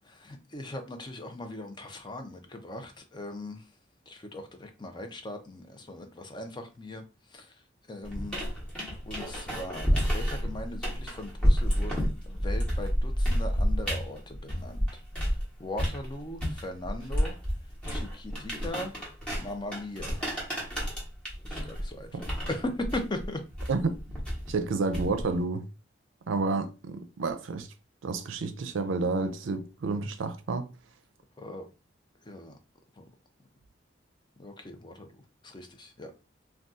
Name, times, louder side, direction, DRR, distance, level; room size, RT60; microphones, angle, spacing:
voice 1, 0.2-3.6 4.1-7.0 7.3-7.5 7.9-8.4 9.1-14.9 15.6-17.4 17.9-18.9 19.4-20.3 21.5-23.4 31.4-31.7 32.3-32.6 33.0-33.1 34.4-35.1 35.4-36.1, left 1 dB, 25° left, 0.5 m, -39 dB
sound 1, 8.0-15.4 15.8-25.4, equal, 5° left, 1.0 m, -30 dB
voice 2, 24.5-25.6 26.3-27.7 28.0-30.7, right 3 dB, 85° right, 0.5 m, -30 dB
2.6 x 2.3 x 3.5 m
head